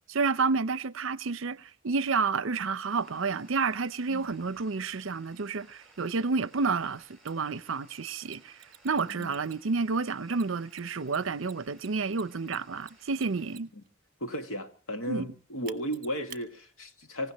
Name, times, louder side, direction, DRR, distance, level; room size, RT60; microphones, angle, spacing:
voice 1, 0.1-8.6 8.8-13.7 15.1-15.3, right 4 dB, 70° right, 0.7 m, -30 dB
sound 1, 2.8-13.6, right 3 dB, ahead, 5.1 m, -60 dB
Mechanisms, 7.3-7.4 8.3-9.8 10.3-13.9 15.7-16.4, right 10 dB, 45° right, 1.3 m, -50 dB
voice 2, 14.2-17.3, equal, 90° left, 2.2 m, -35 dB
26.0 x 16.0 x 3.1 m
head